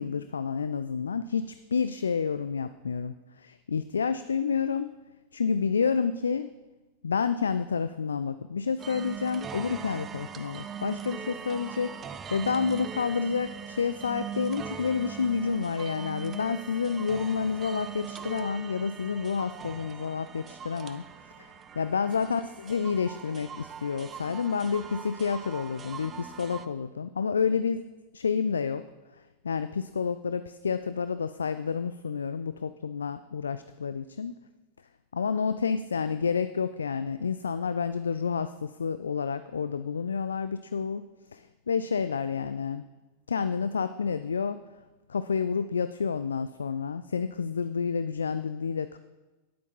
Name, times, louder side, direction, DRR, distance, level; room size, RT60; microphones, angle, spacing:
voice 1, 0.0-4.9 5.3-6.5 7.0-21.0 21.4-27.8 28.1-28.8 29.4-34.3 35.1-42.8 43.3-44.6 45.1-49.0, left 6 dB, 70° left, 12 dB, 0.3 m, -29 dB
sound 1, 8.8-26.7, right 7 dB, 25° right, 0.6 m, -41 dB
10.5 x 8.2 x 5.4 m, 1.2 s
figure-of-eight pair, 90°, 0 cm